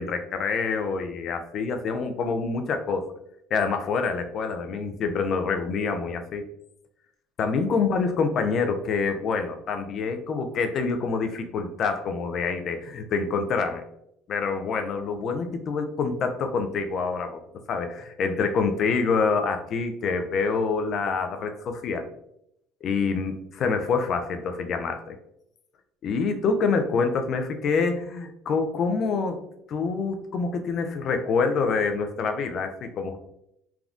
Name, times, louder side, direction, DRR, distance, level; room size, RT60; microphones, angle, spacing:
voice 1, 0.0-3.1 3.5-6.4 7.4-13.8 14.3-17.4 17.7-22.1 22.8-25.2 26.0-29.4 29.7-33.2, left 4 dB, 55° left, 6 dB, 0.4 m, -26 dB
3.4 x 2.2 x 2.4 m, 0.76 s
supercardioid pair, 85°, 0 cm